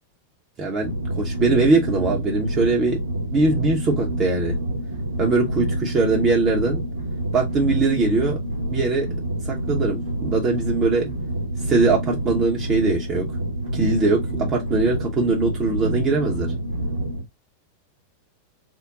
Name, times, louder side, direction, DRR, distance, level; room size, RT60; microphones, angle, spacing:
voice 1, 0.6-3.0 3.3-4.6 5.2-6.8 7.3-8.4 8.7-9.1 9.4-11.1 11.6-13.3 13.7-16.5, right 3 dB, 25° right, 0.8 m, -21 dB
sound 1, 0.8-17.2, right 1 dB, 80° right, 1.0 m, -27 dB
3.7 x 2.2 x 3.6 m
figure-of-eight pair, 90°, 0 cm